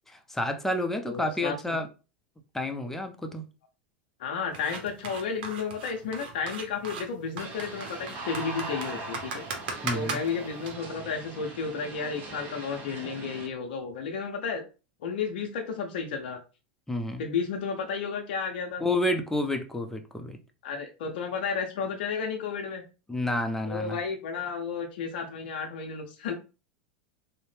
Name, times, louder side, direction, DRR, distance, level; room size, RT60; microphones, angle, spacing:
voice 1, 0.1-1.9 2.5-3.4 9.8-10.2 16.9-17.2 18.8-20.4 23.1-24.0, left 1 dB, 5° left, 0.5 m, -29 dB
voice 2, 1.0-1.8 4.2-9.4 9.9-14.6 15.0-16.4 17.2-18.8 20.6-22.8 23.7-26.3, left 5 dB, 75° left, 0.5 m, -32 dB
sound 1, 4.5-10.7, right 4 dB, 70° right, 0.8 m, -37 dB
sound 2, 7.4-13.5, right 2 dB, 40° right, 1.0 m, -40 dB
2.7 x 2.0 x 3.1 m
hypercardioid pair, 105°, 5 cm